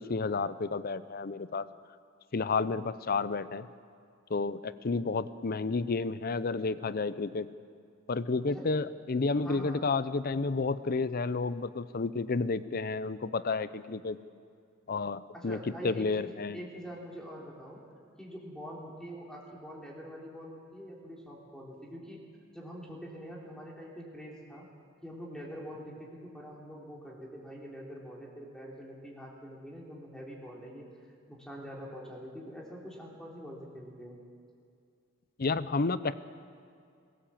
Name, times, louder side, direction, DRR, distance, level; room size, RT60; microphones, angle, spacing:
voice 1, 0.0-1.6 2.3-3.7 4.3-7.5 8.1-14.2 14.9-15.6 15.8-16.6 35.4-36.1, left 4 dB, 45° left, 15 dB, 0.6 m, -31 dB
voice 2, 9.4-9.9 15.3-17.8 18.2-22.2 22.5-24.7 25.0-30.9 31.3-34.2, equal, 5° left, -3 dB, 3.2 m, -45 dB
22.5 x 15.5 x 7.5 m, 2.4 s
head